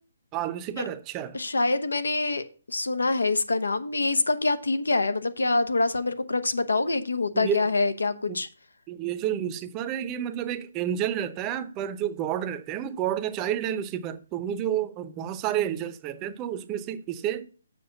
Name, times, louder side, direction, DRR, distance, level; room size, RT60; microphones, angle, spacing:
voice 1, 0.3-1.4 7.3-7.7 8.3-8.4 8.9-17.4, right 10 dB, 20° right, 0.7 m, -30 dB
voice 2, 1.3-8.5, left 3 dB, 90° left, 1.0 m, -25 dB
7.6 x 4.9 x 6.7 m
hypercardioid pair, 150°, 0 cm